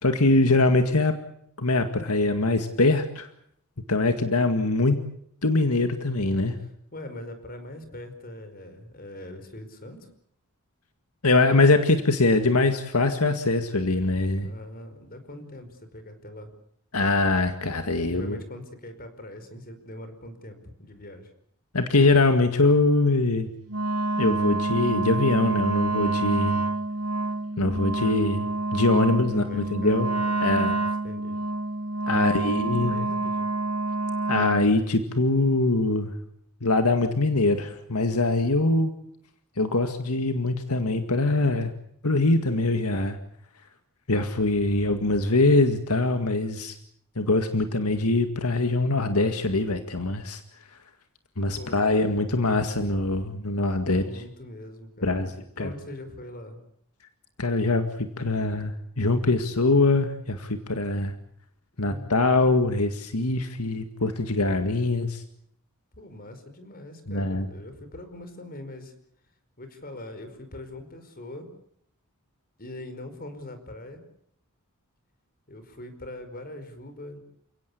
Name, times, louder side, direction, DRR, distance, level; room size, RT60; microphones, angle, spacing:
voice 1, 0.0-1.1 1.6-3.3 3.9-5.0 5.4-6.6 11.2-14.5 16.9-18.4 21.7-23.5 24.2-26.6 27.6-30.1 30.4-30.8 32.1-33.0 34.3-36.1 36.6-38.9 39.6-41.7 42.0-43.2 44.1-46.8 47.2-50.4 51.4-54.0 55.0-55.3 55.6-55.7 57.4-61.1 61.8-65.2 67.1-67.5, left 2 dB, 85° left, 7 dB, 2.0 m, -23 dB
voice 2, 6.6-10.1 14.4-16.5 18.0-21.3 29.0-31.4 32.1-33.5 51.5-51.9 53.9-56.6 61.8-62.5 65.9-68.9 69.6-71.5 72.6-74.0 75.5-77.2, left 1 dB, 40° left, 9 dB, 5.0 m, -42 dB
Wind instrument woodwind instrument, 23.7-34.7, right 2 dB, 90° right, 2.9 m, -27 dB
30.0 x 17.5 x 8.5 m, 0.70 s
head